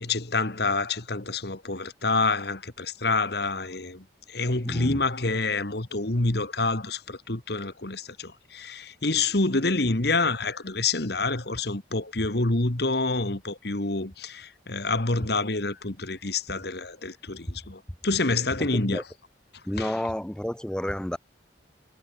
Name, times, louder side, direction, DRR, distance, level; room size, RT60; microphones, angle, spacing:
voice 1, 0.0-19.0 19.8-20.0, left 3 dB, 55° left, 1.8 m, -27 dB
voice 2, 4.6-5.0 18.6-19.0 19.7-21.2, equal, 5° left, 0.5 m, -30 dB
head